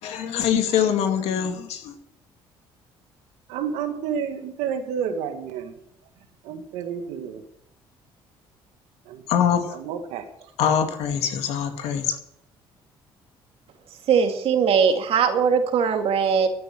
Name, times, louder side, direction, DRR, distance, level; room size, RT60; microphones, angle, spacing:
voice 1, 0.0-2.0 9.3-9.7 10.6-12.2, left 8 dB, 75° left, 6 dB, 2.2 m, -23 dB
voice 2, 3.5-5.8 6.4-7.4 9.1-9.3 9.7-10.5, right 7 dB, 85° right, 6 dB, 2.0 m, -30 dB
voice 3, 14.1-16.5, right 6 dB, 65° right, 5 dB, 2.4 m, -20 dB
13.5 x 9.5 x 7.7 m, 0.77 s
supercardioid pair, 70°, 11 cm